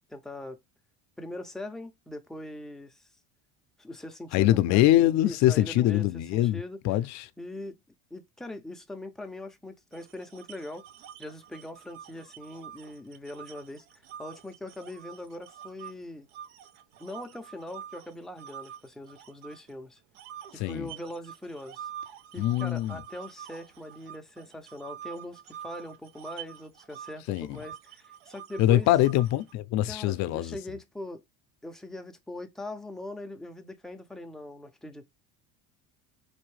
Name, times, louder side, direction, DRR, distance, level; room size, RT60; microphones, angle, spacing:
voice 1, 0.1-0.6 1.2-3.0 3.8-4.9 5.2-6.1 6.3-6.8 7.4-7.7 8.1-10.8 11.2-13.9 14.2-16.3 17.0-20.0 20.5-21.9 22.3-28.9 29.9-31.2 31.6-35.1, left 1 dB, ahead, 0.5 m, -41 dB
voice 2, 4.3-7.3 20.6-20.9 22.4-23.0 27.3-27.6 28.6-30.6, left 14 dB, 55° left, 0.5 m, -23 dB
sound 1, 9.9-15.9 16.3-19.7 20.1-29.5, right 10 dB, 75° right, 0.6 m, -46 dB
4.3 x 2.7 x 3.1 m
cardioid pair, 135°, 33 cm